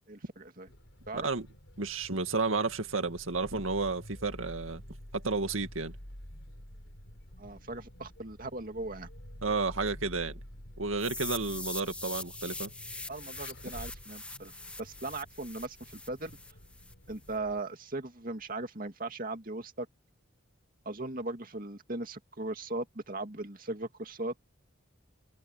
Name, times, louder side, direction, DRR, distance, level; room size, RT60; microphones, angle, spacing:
voice 1, 0.1-0.7 1.1-1.3 7.4-9.1 13.1-14.5 14.8-16.3 17.1-19.9 20.9-24.3, right 2 dB, 45° right, 2.3 m, -38 dB
Vehicle, 0.7-17.6, equal, 65° left, 5.3 m, -49 dB
voice 2, 1.1-1.5 1.8-4.8 5.1-5.9 9.4-10.4 10.8-12.7, right 3 dB, 85° right, 2.2 m, -32 dB
sound 1, 11.0-16.9, left 2 dB, 5° left, 1.6 m, -42 dB
head